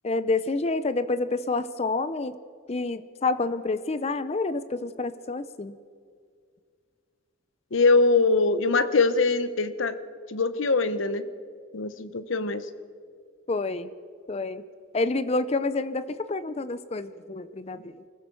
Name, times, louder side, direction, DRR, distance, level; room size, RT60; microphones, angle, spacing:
voice 1, 0.0-2.3 2.7-5.8 13.5-13.9 14.3-14.6 14.9-18.0, left 3 dB, 30° left, 13 dB, 0.5 m, -28 dB
voice 2, 7.7-10.0 10.3-11.3 11.7-12.6, left 3 dB, 75° left, 13 dB, 0.9 m, -22 dB
25.0 x 15.5 x 6.9 m, 2.2 s
head